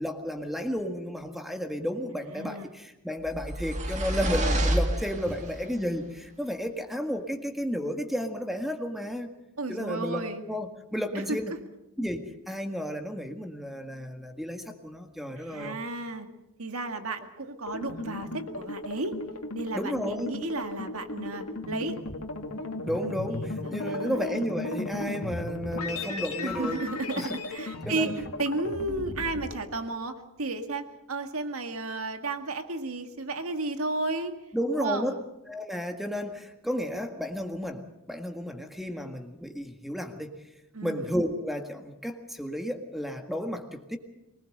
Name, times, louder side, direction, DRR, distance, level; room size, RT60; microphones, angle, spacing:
voice 1, 0.0-9.3 9.7-11.5 12.0-15.8 19.7-20.3 22.9-26.8 27.1-27.4 27.9-28.1 34.5-35.1 35.5-40.3 40.8-44.0, equal, ahead, 5 dB, 1.8 m, -32 dB
voice 2, 2.3-2.7 9.6-10.4 11.1-11.6 15.4-16.3 16.6-19.2 19.5-22.0 23.3-24.5 26.4-34.3 34.7-35.2 40.7-41.1, right 2 dB, 70° right, 7 dB, 2.0 m, -33 dB
sound 1, 3.3-5.7, right 1 dB, 35° right, 2.4 m, -28 dB
sound 2, 17.6-29.6, left 2 dB, 80° left, 2.3 m, -36 dB
24.5 x 19.5 x 6.7 m, 0.93 s
head